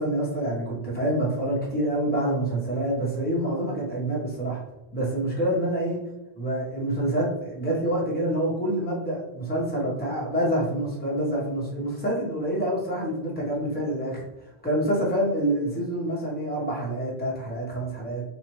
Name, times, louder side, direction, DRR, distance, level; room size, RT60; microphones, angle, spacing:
voice 1, 0.0-4.6 4.9-6.0 6.4-14.2 14.6-18.2, right 1 dB, 10° left, -5 dB, 1.2 m, -27 dB
4.2 x 2.8 x 3.1 m, 0.96 s
omnidirectional pair, 1.0 m